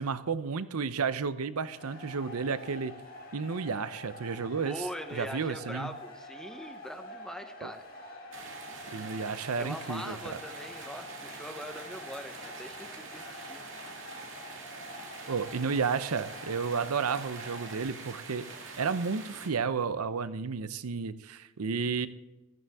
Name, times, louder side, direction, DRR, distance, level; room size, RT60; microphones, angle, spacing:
voice 1, 0.0-3.0 3.3-5.9 7.6-7.7 8.9-10.4 15.3-18.5 18.8-22.1, right 5 dB, 85° right, 14 dB, 0.7 m, -32 dB
sound 1, 1.7-17.8, left 1 dB, 45° left, 5.1 m, -47 dB
voice 2, 4.6-7.8 9.6-13.6, equal, 5° left, 6 dB, 0.8 m, -42 dB
sound 2, 8.3-19.5, right 4 dB, 60° right, 2.3 m, -45 dB
15.5 x 13.0 x 3.5 m, 1.1 s
head